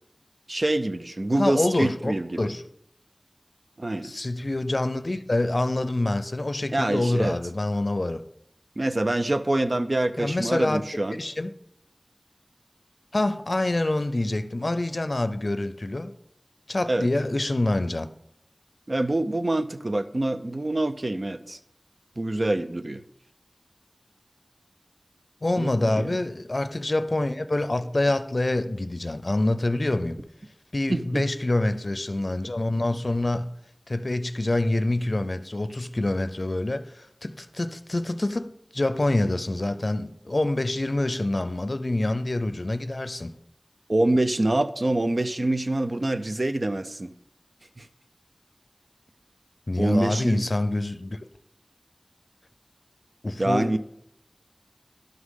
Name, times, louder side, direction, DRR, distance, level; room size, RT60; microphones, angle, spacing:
voice 1, 0.5-2.5 3.8-4.1 6.7-7.4 8.8-11.2 16.9-17.1 18.9-21.6 22.2-23.0 25.6-26.2 30.9-31.2 43.9-47.1 47.8-47.9 49.8-50.5 53.4-53.8, right 1 dB, 70° right, 0.4 m, -25 dB
voice 2, 1.4-2.6 4.0-8.2 10.2-10.8 11.2-11.5 13.1-16.1 16.7-18.1 25.4-30.2 30.7-33.5 33.9-43.3 49.7-51.2 53.2-53.8, left 2 dB, 70° left, 0.5 m, -26 dB
11.5 x 6.2 x 3.7 m
wide cardioid pair, 40°, 0 cm